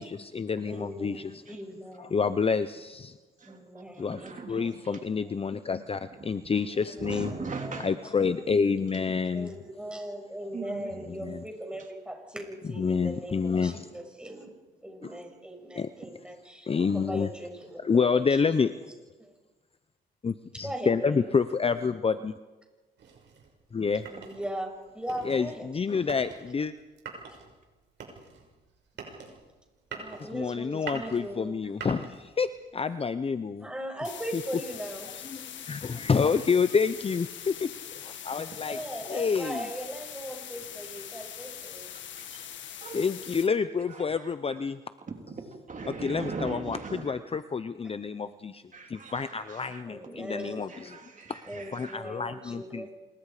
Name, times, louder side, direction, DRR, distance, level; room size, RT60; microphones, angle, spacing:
voice 1, 0.0-1.4 2.0-3.2 4.0-7.3 7.8-9.5 11.1-11.4 12.8-14.1 15.0-15.1 15.8-15.9 16.7-17.3 17.8-18.7 20.2-22.3 23.7-24.1 25.2-26.7 30.3-33.7 34.3-34.4 35.1-39.6 42.9-44.8 46.0-48.6 48.9-51.0 51.3-51.4 51.7-52.9, left 5 dB, 30° left, 12 dB, 0.8 m, -28 dB
voice 2, 0.7-2.2 3.4-5.4 6.9-7.9 9.3-14.5 14.8-18.7 19.2-19.3 20.6-21.3 24.1-25.7 29.9-31.6 33.6-35.1 38.6-41.9 46.9-47.0 49.8-50.7 51.4-52.9, right 1 dB, 5° right, 2 dB, 6.5 m, -39 dB
voice 3, 3.9-4.8 6.2-6.3 7.0-7.9 10.5-11.3 16.8-16.9 42.8-43.1 43.9-44.1 44.5-44.6 45.1-47.2 48.7-49.8 50.7-52.0, right 4 dB, 40° right, 2 dB, 3.6 m, -40 dB
sound 1, 23.0-32.6, right 5 dB, 65° right, 6.2 m, -45 dB
sound 2, 34.0-43.5, left 9 dB, 70° left, 1.8 m, -42 dB
27.0 x 22.0 x 5.0 m, 1.2 s
cardioid pair, 90°, 20 cm